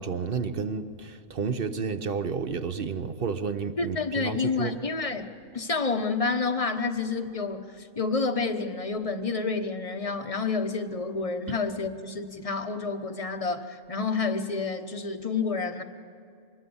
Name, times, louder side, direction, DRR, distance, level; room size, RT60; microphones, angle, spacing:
voice 1, 0.0-4.8 11.5-11.6, right 5 dB, 45° right, 1.1 m, -31 dB
voice 2, 3.8-15.8, left 4 dB, 30° left, 1.0 m, -29 dB
25.5 x 21.5 x 7.1 m
omnidirectional pair, 1.4 m